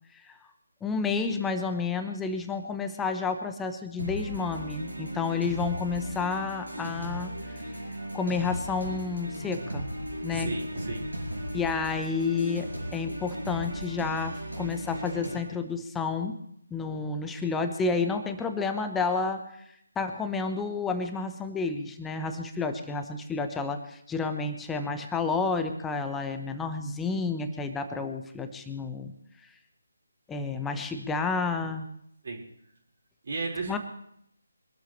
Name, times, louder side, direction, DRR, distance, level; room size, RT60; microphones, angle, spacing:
voice 1, 0.8-7.3 8.1-9.9 10.2-10.5 11.5-16.4 16.7-19.4 20.0-29.1 30.3-31.9 33.7-33.8, left 4 dB, 5° left, 6 dB, 1.1 m, -30 dB
sound 1, 4.0-15.4, equal, 90° right, 6.2 m, -36 dB
voice 2, 10.3-11.2 32.2-32.4 33.2-33.8, right 3 dB, 55° right, 0 dB, 5.0 m, -34 dB
24.5 x 12.5 x 3.3 m, 0.70 s
figure-of-eight pair, 155°, 0 cm